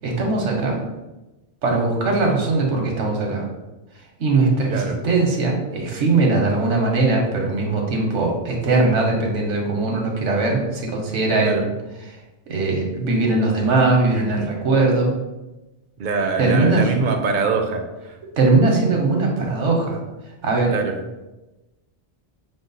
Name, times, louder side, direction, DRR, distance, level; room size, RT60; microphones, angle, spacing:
voice 1, 0.0-0.8 1.6-3.5 4.2-11.7 12.1-12.2 12.5-15.1 16.4-16.9 18.4-20.0 20.4-20.7, right 3 dB, 90° right, 0 dB, 1.3 m, -20 dB
voice 2, 16.0-17.8 20.7-21.0, right 4 dB, 55° right, 4 dB, 0.6 m, -23 dB
6.0 x 2.1 x 3.9 m, 1.0 s
omnidirectional pair, 1.2 m